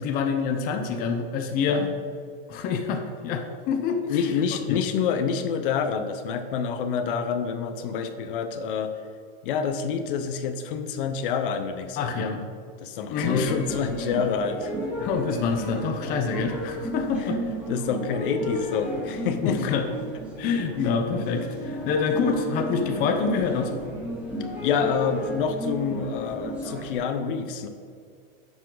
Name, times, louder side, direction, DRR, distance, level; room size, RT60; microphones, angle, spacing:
voice 1, 0.0-1.9 2.5-4.4 4.7-4.8 12.0-12.4 13.1-13.4 15.0-17.4 19.4-19.8 20.4-23.7, left 5 dB, 30° left, 5 dB, 0.8 m, -26 dB
voice 2, 1.5-1.9 4.1-8.9 9.4-12.4 12.8-14.7 17.7-19.8 24.6-27.7, left 6 dB, 60° left, 8 dB, 0.9 m, -27 dB
sound 1, 13.2-27.0, equal, 5° right, 2.1 m, -33 dB
11.0 x 7.3 x 3.9 m, 2.2 s
supercardioid pair, 160°, 30 cm